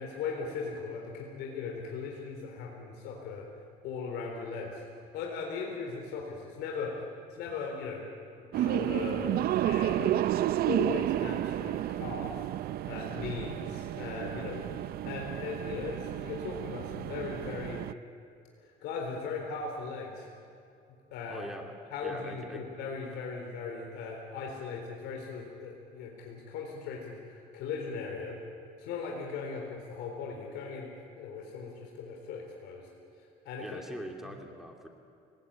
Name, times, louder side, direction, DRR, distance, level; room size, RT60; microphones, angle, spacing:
voice 1, 0.0-3.5 3.8-7.0 7.3-8.1 8.4-12.5 12.9-17.8 18.6-20.3 21.1-21.5 21.9-28.4 28.8-32.9 33.2-33.8 34.2-34.4, left 5 dB, 85° left, 1 dB, 3.9 m, -38 dB
sound 1, 8.5-17.9, right 13 dB, 65° right, 0.6 m, -31 dB
voice 2, 21.3-21.7 22.0-22.6 33.6-34.9, equal, ahead, 2 dB, 2.8 m, -42 dB
29.5 x 19.0 x 8.9 m, 2.5 s
cardioid pair, 110°, 17 cm